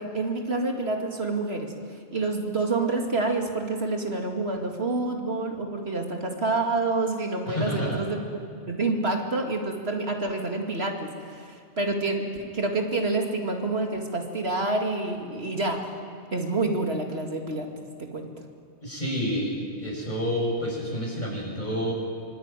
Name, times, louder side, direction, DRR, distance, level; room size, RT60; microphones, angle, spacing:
voice 1, 0.0-8.2 8.7-15.9 16.3-18.3, right 3 dB, 65° right, 3 dB, 2.7 m, -28 dB
voice 2, 7.4-8.0 18.8-21.9, equal, 40° left, -2 dB, 7.5 m, -29 dB
25.5 x 23.5 x 9.2 m, 2.2 s
omnidirectional pair, 1.1 m